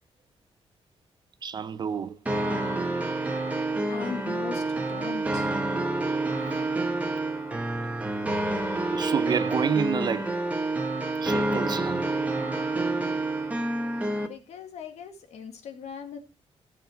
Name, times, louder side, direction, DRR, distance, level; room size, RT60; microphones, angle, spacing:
voice 1, 1.4-2.2 8.9-10.4 11.2-12.1, right 7 dB, 40° right, 0.6 m, -29 dB
sound 1, 2.3-14.3, right 2 dB, 15° right, 1.5 m, -28 dB
voice 2, 3.9-5.5 14.2-16.2, left 7 dB, 85° left, 2.1 m, -39 dB
15.0 x 6.6 x 4.4 m
wide cardioid pair, 150°, 11 cm